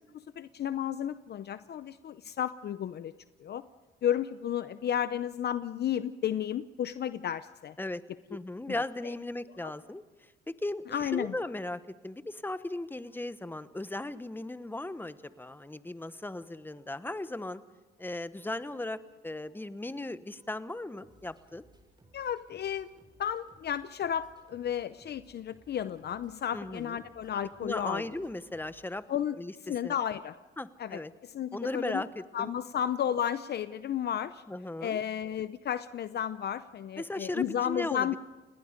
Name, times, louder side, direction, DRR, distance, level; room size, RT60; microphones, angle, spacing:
voice 1, 0.1-3.1 3.4-3.6 4.0-7.7 8.7-9.1 9.6-9.7 10.9-11.3 22.1-22.9 23.2-28.0 29.1-29.4 29.6-30.3 30.8-32.0 32.3-34.4 34.8-38.2, left 9 dB, 55° left, 13 dB, 0.7 m, -33 dB
voice 2, 8.3-17.6 18.0-21.7 26.5-27.0 27.6-29.0 29.4-29.5 29.8-29.9 30.6-31.1 31.5-32.5 34.5-35.0 37.0-38.2, left 2 dB, 10° left, 13 dB, 1.1 m, -37 dB
sound 1, 13.0-29.6, right 1 dB, 25° right, 7.1 m, -64 dB
30.0 x 19.5 x 5.2 m, 1.3 s
cardioid pair, 90°, 20 cm